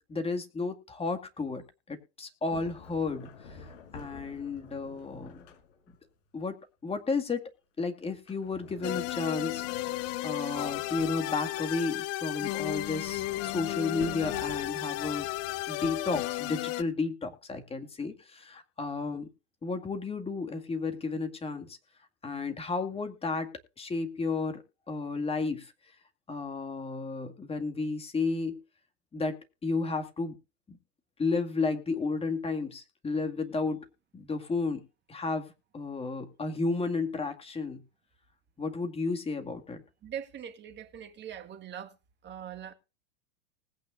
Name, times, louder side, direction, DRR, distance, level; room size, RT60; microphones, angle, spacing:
voice 1, 0.0-1.6 1.9-3.6 3.9-5.5 6.3-7.5 7.8-15.3 15.7-19.3 19.6-21.8 22.2-25.7 26.3-28.6 29.1-30.4 30.7-30.8 31.2-33.8 34.1-34.8 35.1-37.8 38.6-39.8, left 3 dB, 15° left, 2.1 m, -33 dB
Sliding door, 2.5-6.0 8.1-11.6 12.2-16.6, left 5 dB, 60° left, 5.9 m, -48 dB
sound 1, 8.8-16.8, left 17 dB, 40° left, 0.8 m, -34 dB
voice 2, 40.0-42.0 42.2-42.7, right 9 dB, 30° right, 1.8 m, -41 dB
20.0 x 9.0 x 2.6 m
hypercardioid pair, 110°, 37 cm